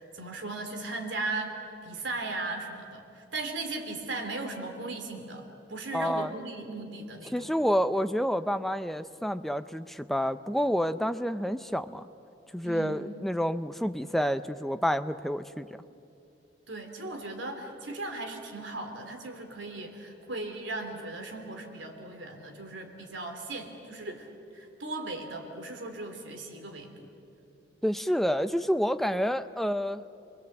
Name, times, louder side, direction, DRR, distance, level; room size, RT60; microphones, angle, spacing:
voice 1, 0.0-1.6 1.8-7.5 12.6-13.0 16.7-27.1, right 2 dB, 75° right, 4 dB, 3.0 m, -37 dB
voice 2, 5.9-6.3 7.3-12.1 12.5-15.7 27.8-30.0, equal, ahead, 10 dB, 0.5 m, -28 dB
28.5 x 22.0 x 7.9 m, 2.7 s
head